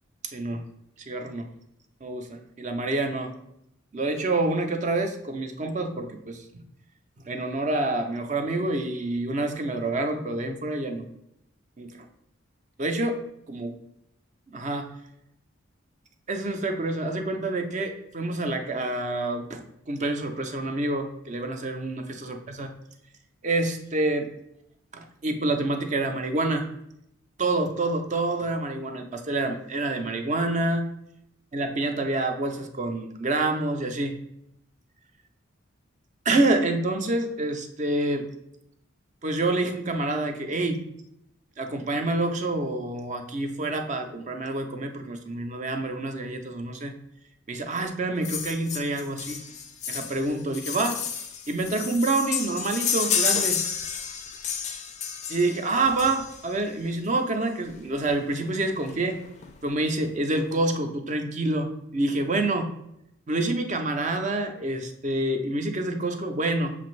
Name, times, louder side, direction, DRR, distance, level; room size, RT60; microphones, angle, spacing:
voice 1, 0.3-0.6 1.1-1.5 2.0-3.3 3.9-6.6 7.2-11.0 11.8-12.0 12.8-13.2 13.5-13.7 14.5-14.9 16.3-22.7 23.4-24.3 24.9-26.7 27.4-30.9 31.5-34.2 36.3-38.3 39.2-40.8 41.6-46.9 47.5-49.4 49.9-51.0 51.5-53.6 55.3-59.2 59.6-62.7 63.3-66.7, right 2 dB, 35° right, 5 dB, 0.5 m, -27 dB
sound 1, 48.2-56.6 57.7-57.8 58.1-58.2 58.4-58.6 58.9-59.5 60.0-60.1, left 7 dB, 35° left, 0.4 m, -31 dB
6.4 x 2.5 x 3.1 m, 0.79 s
head